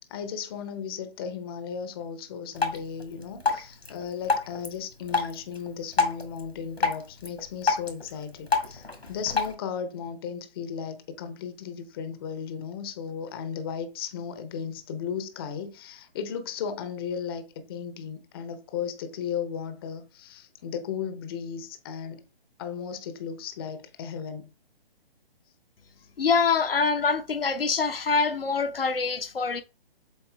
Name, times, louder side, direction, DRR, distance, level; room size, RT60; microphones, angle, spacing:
voice 1, 0.1-22.2 22.6-24.5, left 7 dB, 25° left, 0.8 m, -35 dB
Drip, 2.5-9.5, left 4 dB, 85° left, 2.0 m, -30 dB
voice 2, 26.2-29.6, left 5 dB, 70° left, 0.9 m, -25 dB
7.3 x 4.2 x 3.3 m
figure-of-eight pair, 135°, 30 cm